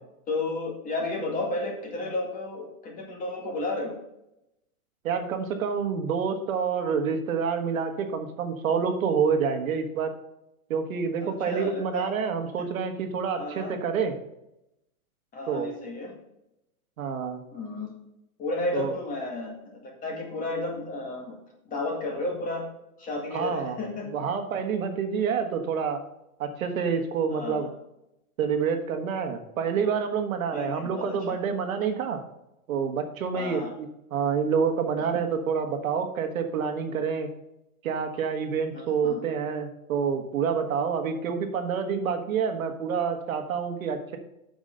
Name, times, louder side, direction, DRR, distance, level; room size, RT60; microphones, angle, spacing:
voice 1, 0.3-4.0 11.2-12.1 12.6-12.7 13.4-13.8 15.3-16.1 17.5-17.9 18.4-21.3 21.7-22.7 23.0-24.1 27.3-27.7 30.5-31.5 33.3-33.7 38.7-39.2, left 2 dB, 20° left, 0 dB, 2.0 m, -32 dB
voice 2, 5.0-10.1 10.7-14.1 15.5-15.7 17.0-17.4 18.7-18.9 23.3-23.8 24.1-26.0 26.4-27.7 28.4-32.2 32.7-37.3 37.8-44.2, right 6 dB, 65° right, 5 dB, 1.6 m, -28 dB
7.8 x 6.1 x 5.3 m, 0.87 s
hypercardioid pair, 145°, 43 cm